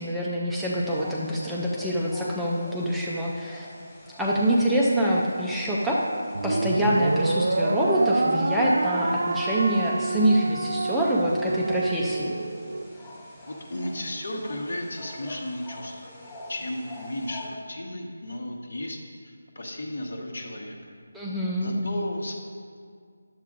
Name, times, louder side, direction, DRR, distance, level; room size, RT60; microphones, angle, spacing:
voice 1, 0.0-3.7 4.2-6.0 6.4-12.4 21.1-21.8, right 1 dB, ahead, -6 dB, 0.4 m, -25 dB
sound 1, 0.7-17.5, left 1 dB, 20° left, 1.3 m, -46 dB
sound 2, 6.3-12.8, right 2 dB, 70° right, 0.4 m, -27 dB
voice 2, 13.5-20.8 21.6-22.3, left 1 dB, 65° left, 2 dB, 1.1 m, -34 dB
10.5 x 7.4 x 2.5 m, 2.1 s
figure-of-eight pair, 175°, 0 cm